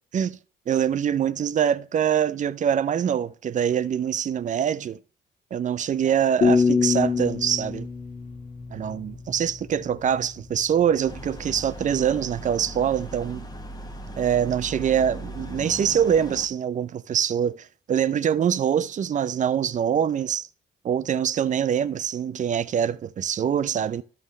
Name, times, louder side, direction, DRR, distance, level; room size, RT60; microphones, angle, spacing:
voice 1, 0.7-5.0 5.5-7.9 8.7-13.5 14.2-20.5 20.8-24.0, right 8 dB, 40° right, 0.4 m, -24 dB
sound 1, 6.4-9.4, left 5 dB, 40° left, 1.7 m, -24 dB
sound 2, 11.1-16.5, equal, 20° left, 1.0 m, -38 dB
12.5 x 5.4 x 3.1 m
cardioid pair, 90°, 20 cm